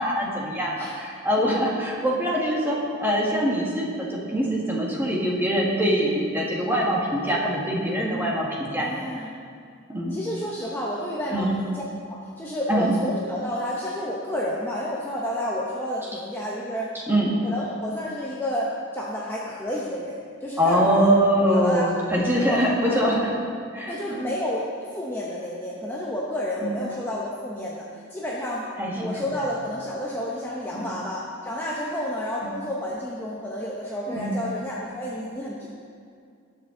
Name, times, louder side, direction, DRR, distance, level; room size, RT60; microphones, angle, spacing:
voice 1, 0.0-8.9 9.9-10.2 11.3-11.6 12.7-13.0 17.1-17.3 20.6-23.3 23.7-24.2 26.6-26.8 28.8-29.1 30.7-30.9 34.1-34.4, equal, 10° right, -3 dB, 1.7 m, -23 dB
voice 2, 8.8-9.4 10.1-11.8 12.1-16.9 17.4-21.1 21.5-23.0 23.9-24.7 24.9-28.7 28.9-35.7, equal, 10° left, -5 dB, 0.9 m, -30 dB
19.5 x 6.8 x 3.9 m, 2.3 s
head